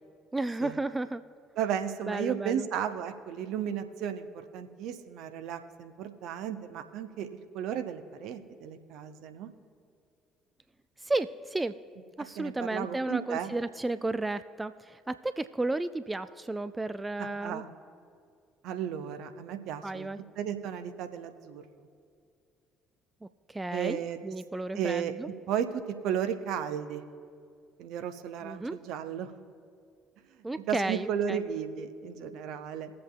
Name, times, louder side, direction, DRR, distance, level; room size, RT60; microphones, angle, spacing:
voice 1, 0.3-1.2 2.0-2.7 11.0-11.8 12.2-17.6 19.8-20.2 23.2-25.3 28.4-28.8 30.4-31.4, right 2 dB, 15° right, 12 dB, 0.4 m, -33 dB
voice 2, 1.6-4.3 4.5-9.5 12.4-13.5 17.2-17.7 18.6-20.1 20.4-21.6 23.7-24.2 24.8-25.1 25.5-27.1 27.8-29.3 30.7-32.9, right 8 dB, 55° right, 8 dB, 0.8 m, -34 dB
20.5 x 7.7 x 2.3 m, 2.3 s
figure-of-eight pair, 50°, 0 cm